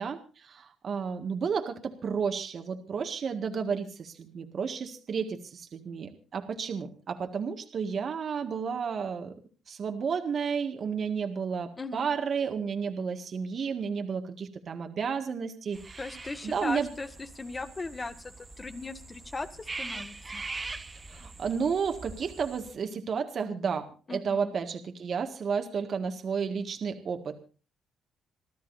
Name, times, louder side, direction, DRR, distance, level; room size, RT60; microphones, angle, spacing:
voice 1, 0.0-9.3 9.7-16.0 16.4-16.9 21.1-27.4, right 6 dB, 55° right, 5 dB, 1.8 m, -32 dB
voice 2, 11.8-12.1 16.0-20.4 24.1-24.5, left 3 dB, 25° left, 9 dB, 1.8 m, -38 dB
sound 1, 15.7-22.7, right 3 dB, 25° right, 1.1 m, -43 dB
27.0 x 13.0 x 2.6 m, 0.36 s
cardioid pair, 90°, 0 cm